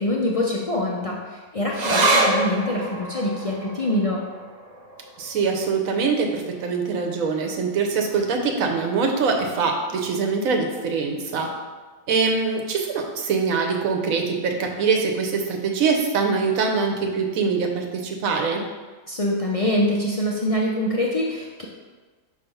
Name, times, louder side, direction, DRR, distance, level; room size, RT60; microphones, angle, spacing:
voice 1, 0.0-4.2 19.1-21.6, left 1 dB, 55° left, -3 dB, 0.3 m, -24 dB
sound 1, 1.7-8.5 8.8-8.9 9.3-9.9 10.5-10.6, right 2 dB, 50° right, 0.5 m, -28 dB
voice 2, 5.2-11.5 12.1-18.6, right 5 dB, 75° right, 3 dB, 1.2 m, -23 dB
5.7 x 3.3 x 5.4 m, 1.4 s
omnidirectional pair, 1.4 m